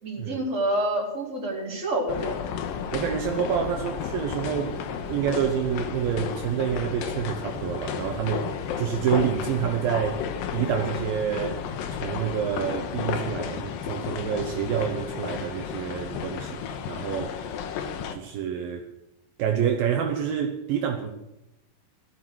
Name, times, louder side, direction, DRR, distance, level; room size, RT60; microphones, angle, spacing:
voice 1, 0.0-2.4, right 1 dB, 20° right, 4.1 m, -28 dB
sound 1, 2.1-18.2, left 7 dB, 70° left, 2.7 m, -32 dB
voice 2, 2.9-4.8 5.1-10.3 10.5-11.6 11.9-17.4 18.1-18.9 19.4-21.1, right 8 dB, 75° right, 2.7 m, -28 dB
16.5 x 12.0 x 6.3 m
omnidirectional pair, 4.5 m